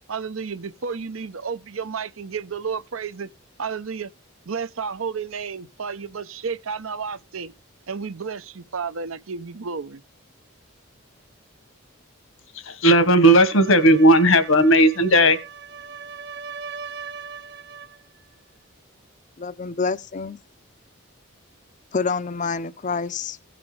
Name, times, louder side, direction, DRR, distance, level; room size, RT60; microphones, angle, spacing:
voice 1, 0.1-3.3 3.6-4.1 4.5-7.5 7.9-10.0, right 5 dB, 85° right, 0.8 m, -31 dB
voice 2, 12.5-15.4, equal, 75° left, 1.5 m, -15 dB
sound 1, 13.1-18.0, right 6 dB, 55° right, 0.6 m, -39 dB
voice 3, 19.4-20.4 21.9-23.4, left 4 dB, 35° left, 0.5 m, -27 dB
17.0 x 5.9 x 3.3 m
head